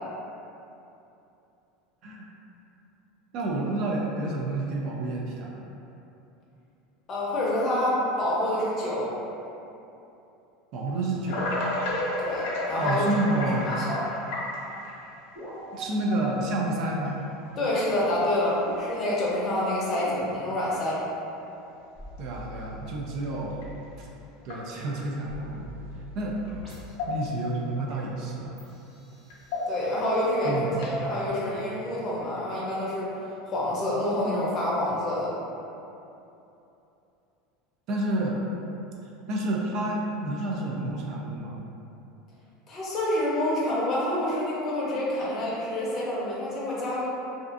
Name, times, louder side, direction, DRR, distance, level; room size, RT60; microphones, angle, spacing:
voice 1, 3.3-5.6 10.7-11.6 12.8-13.7 15.7-17.2 22.2-23.6 24.0-24.1 24.4-25.7 26.2-26.4 27.1-28.6 30.4-31.1 37.9-38.4 39.3-41.6, right 2 dB, 50° right, -1 dB, 0.3 m, -29 dB
voice 2, 7.1-9.1 12.2-13.0 13.3-14.0 17.6-21.0 29.7-35.3 42.7-47.1, left 1 dB, 35° left, -7 dB, 0.6 m, -27 dB
sound 1, 11.3-15.1 15.9-16.0 17.0-17.1 17.9-18.2 18.6-18.7 19.2-19.4 20.7-20.8 23.6-23.7 24.4-25.1 26.5-26.6 26.9-27.5 27.9-28.0 29.3-30.0 30.7-31.1, left 1 dB, 75° left, 0.5 m, -32 dB
sound 2, 13.6-13.7 15.4-17.0 18.7-20.3 22.0-23.7 25.3-26.9 28.6-30.3, equal, 10° right, 1.3 m, -42 dB
2.4 x 2.4 x 2.4 m, 2.8 s
supercardioid pair, 140°, 0 cm